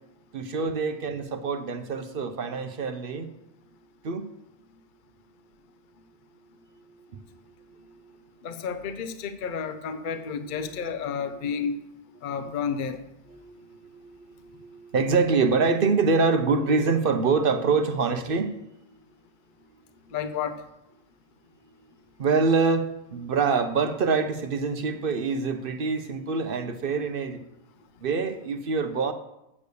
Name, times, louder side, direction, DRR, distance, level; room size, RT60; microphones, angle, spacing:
voice 1, 0.3-3.3 4.0-4.2 10.8-10.9 13.3-13.9 14.5-18.5 22.2-27.4 28.0-29.1, right 4 dB, 50° right, 9 dB, 0.8 m, -25 dB
voice 2, 8.4-11.7 12.2-13.0 20.1-20.6, left 6 dB, 45° left, 9 dB, 0.8 m, -31 dB
8.5 x 6.6 x 6.8 m, 0.87 s
omnidirectional pair, 1.3 m